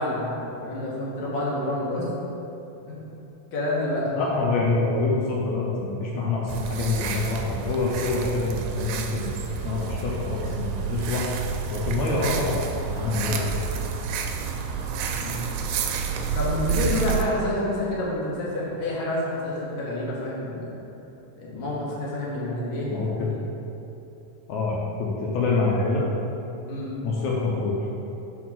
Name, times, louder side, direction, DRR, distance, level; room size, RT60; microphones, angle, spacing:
voice 1, 0.0-2.0 2.8-2.9 3.5-4.1 13.2-13.4 15.2-15.4 16.3-20.7 21.4-23.4 26.7-26.9, left 1 dB, 55° left, -6 dB, 1.5 m, -28 dB
voice 2, 4.1-9.3 9.6-11.3 11.7-13.5 22.9-23.3 24.5-26.1 27.0-27.9, left 3 dB, 75° left, -4 dB, 2.0 m, -26 dB
sound 1, 6.5-17.2, right 6 dB, 80° right, 1.8 m, -29 dB
4.9 x 4.5 x 5.8 m, 3.0 s
omnidirectional pair, 3.7 m